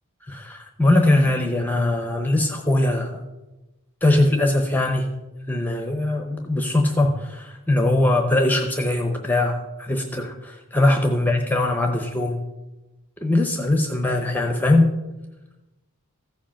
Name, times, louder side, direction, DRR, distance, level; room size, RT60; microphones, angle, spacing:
voice 1, 0.3-3.1 4.0-5.1 5.5-12.4 13.2-14.9, left 2 dB, 10° left, 3 dB, 0.7 m, -21 dB
14.5 x 5.1 x 5.8 m, 1.1 s
head